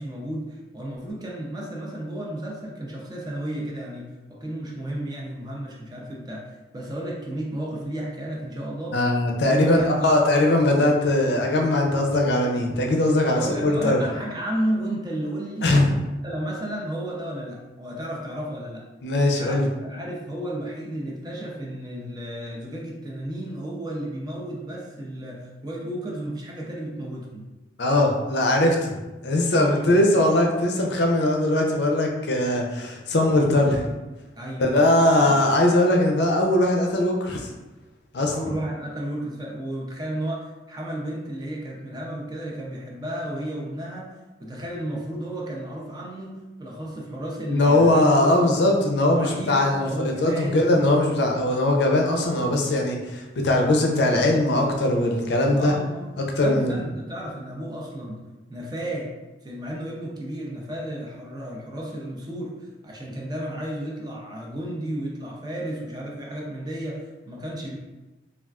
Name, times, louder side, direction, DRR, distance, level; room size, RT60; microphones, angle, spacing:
voice 1, 0.0-9.0 9.5-10.1 13.2-15.7 16.2-18.8 19.4-27.5 29.6-30.0 34.4-34.9 35.3-35.4 38.3-44.1 44.4-48.0 48.4-48.5 49.0-50.7 55.5-56.1 56.4-58.2 58.5-59.1 59.4-67.7, right 1 dB, 20° right, -2 dB, 0.4 m, -33 dB
voice 2, 8.9-14.0 15.6-15.9 19.0-19.7 27.8-28.9 29.2-33.9 34.6-37.4 38.1-38.3 47.5-55.7 56.4-56.7, left 1 dB, 70° left, 1 dB, 0.5 m, -20 dB
3.5 x 2.3 x 2.3 m, 1.1 s
head